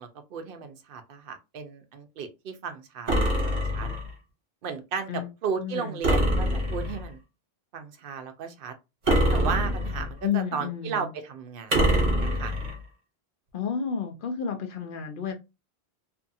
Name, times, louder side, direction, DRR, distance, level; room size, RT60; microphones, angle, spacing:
voice 1, 0.0-3.9 4.6-7.2 7.7-8.7 9.3-12.5, right 6 dB, 65° right, 0.7 m, -35 dB
sound 1, 3.1-4.1 6.0-7.1 9.1-10.2 11.7-12.8, equal, 50° right, 1.1 m, -24 dB
voice 2, 5.6-6.0 10.2-11.2 13.5-15.3, left 7 dB, 60° left, 0.7 m, -31 dB
2.6 x 2.4 x 2.6 m
omnidirectional pair, 1.0 m